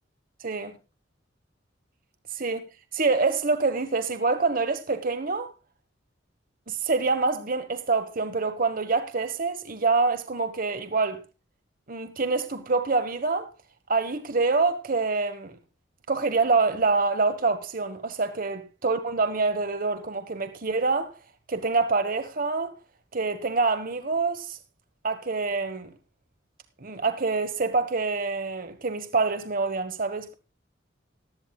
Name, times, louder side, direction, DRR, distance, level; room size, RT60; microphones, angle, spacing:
voice 1, 0.4-0.7 2.3-5.5 6.7-11.2 11.9-13.5 13.9-15.6 16.1-21.1 21.5-22.7 23.1-24.6 25.0-25.9 26.8-30.3, right 4 dB, 45° right, 1.3 m, -26 dB
18.5 x 13.0 x 2.3 m
head